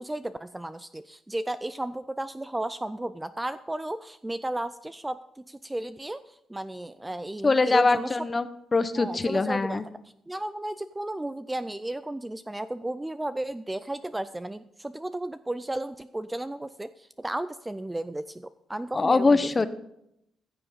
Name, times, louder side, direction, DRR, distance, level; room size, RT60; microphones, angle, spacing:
voice 1, 0.0-8.2 9.0-9.8 10.3-19.5, right 1 dB, 10° right, 13 dB, 0.3 m, -34 dB
voice 2, 7.4-8.5 8.7-9.8 18.9-19.7, left 3 dB, 25° left, 12 dB, 0.7 m, -23 dB
15.0 x 6.9 x 5.5 m, 0.80 s
cardioid pair, 120°, 0 cm